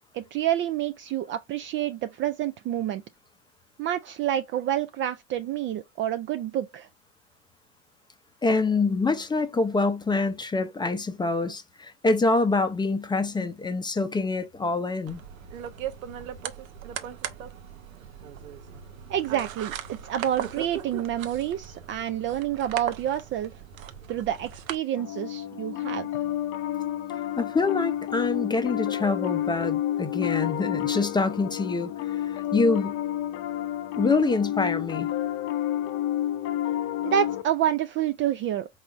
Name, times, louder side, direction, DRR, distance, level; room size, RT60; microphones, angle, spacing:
voice 1, 0.1-3.0 3.8-6.9 19.1-23.5 24.1-26.1 37.0-38.7, right 11 dB, 30° right, 0.4 m, -28 dB
voice 2, 8.4-15.2 27.4-33.0 34.0-35.1, left 3 dB, 10° left, 0.6 m, -26 dB
sound 1, 15.1-24.8, right 9 dB, 90° right, 0.8 m, -38 dB
Piano, 25.0-37.4, left 12 dB, 50° left, 0.8 m, -30 dB
4.7 x 4.1 x 2.4 m
hypercardioid pair, 105°, 40 cm